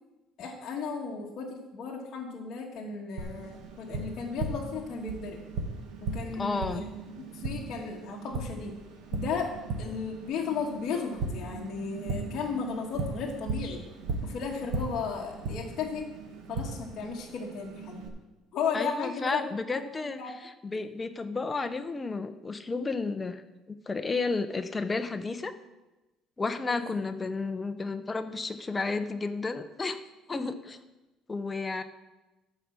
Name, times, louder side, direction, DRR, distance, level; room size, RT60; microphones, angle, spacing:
voice 1, 0.4-5.4 6.0-6.9 7.3-8.7 9.1-9.5 9.8-13.8 14.2-16.1 16.5-18.1 18.5-19.5 19.7-20.3 26.7-26.9, left 5 dB, 40° left, -3 dB, 1.3 m, -35 dB
Tap, 3.2-18.1, right 3 dB, 80° right, 1.5 m, -37 dB
voice 2, 6.4-6.8 18.7-20.2 20.6-23.4 23.7-25.5 26.4-30.0 30.3-30.8 31.3-31.8, left 3 dB, 15° left, 9 dB, 0.5 m, -32 dB
12.0 x 4.8 x 7.3 m, 1.1 s
cardioid pair, 175°, 0 cm